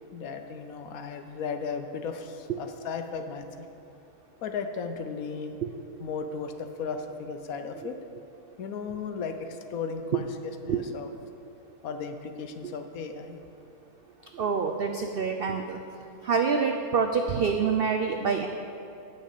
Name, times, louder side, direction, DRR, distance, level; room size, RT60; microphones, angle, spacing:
voice 1, 0.1-3.5 4.4-5.6 6.0-8.0 8.6-11.1 11.8-13.4, left 5 dB, 70° left, 6 dB, 1.2 m, -35 dB
voice 2, 14.3-15.8 16.2-18.5, right 5 dB, 80° right, 5 dB, 0.5 m, -26 dB
9.2 x 6.3 x 8.2 m, 2.8 s
omnidirectional pair, 1.6 m